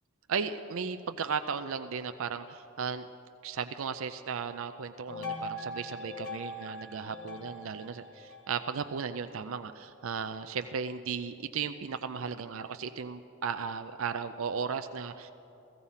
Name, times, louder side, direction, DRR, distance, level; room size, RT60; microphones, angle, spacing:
voice 1, 0.3-3.1 3.4-15.3, right 6 dB, 60° right, 9 dB, 0.4 m, -35 dB
sound 1, 5.1-9.5, left 2 dB, 85° left, 3.0 m, -41 dB
16.0 x 15.0 x 5.6 m, 2.9 s
head